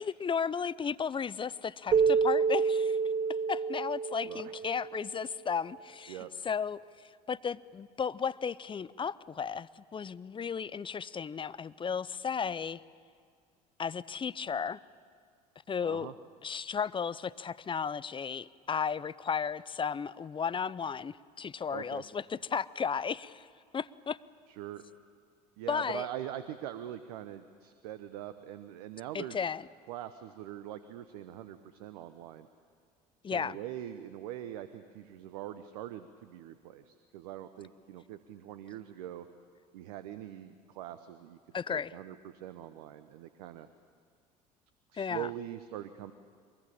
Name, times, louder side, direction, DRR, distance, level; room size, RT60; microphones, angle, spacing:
voice 1, 0.0-3.0 3.5-12.8 13.8-14.8 15.7-16.1 16.4-23.5 23.7-24.2 25.7-26.1 29.1-29.7 33.2-33.6 41.5-41.9 44.9-45.3, left 6 dB, 25° left, 18 dB, 0.6 m, -34 dB
Keyboard (musical), 1.9-5.1, right 5 dB, 40° right, 1.1 m, -28 dB
voice 2, 15.8-16.1 21.7-22.0 24.6-24.8 25.6-29.4 29.9-32.5 33.3-39.3 39.7-41.4 41.7-43.7 44.9-46.1, right 12 dB, 70° right, 11 dB, 1.0 m, -43 dB
23.0 x 21.5 x 8.7 m, 2.1 s
hypercardioid pair, 65°, 21 cm